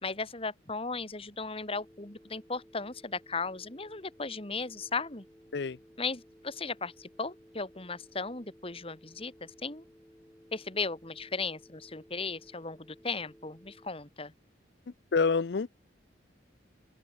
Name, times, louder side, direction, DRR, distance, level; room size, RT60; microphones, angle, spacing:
voice 1, 0.0-5.3 6.0-9.8 10.5-14.3, left 4 dB, 30° left, 2.2 m, -36 dB
Telephone, 1.7-13.9, equal, 5° left, 7.6 m, -58 dB
voice 2, 15.1-15.7, left 4 dB, 65° left, 0.5 m, -27 dB
open air
head